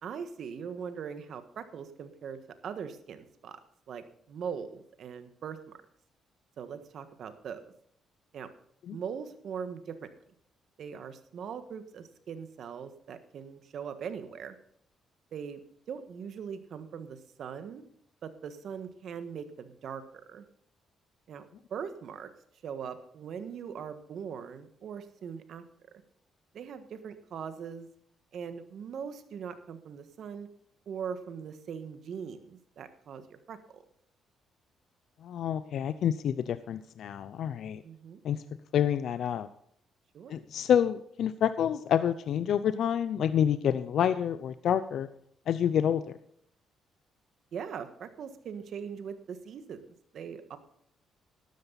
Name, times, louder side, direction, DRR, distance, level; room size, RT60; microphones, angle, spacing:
voice 1, 0.0-3.6 3.9-5.8 6.6-7.6 8.3-8.5 8.9-10.1 10.8-14.6 15.3-15.6 15.9-17.9 18.2-20.5 21.3-22.3 22.6-25.6 26.5-27.9 28.3-30.5 30.8-33.8 37.8-38.2 40.1-40.4 47.5-49.8 50.1-50.6, right 7 dB, 65° right, 10 dB, 1.5 m, -41 dB
voice 2, 35.2-37.8 38.2-38.4 38.7-39.5 40.3-45.1 45.5-46.2, left 9 dB, 70° left, 13 dB, 0.6 m, -28 dB
12.5 x 12.5 x 4.0 m, 0.68 s
cardioid pair, 90°, 0 cm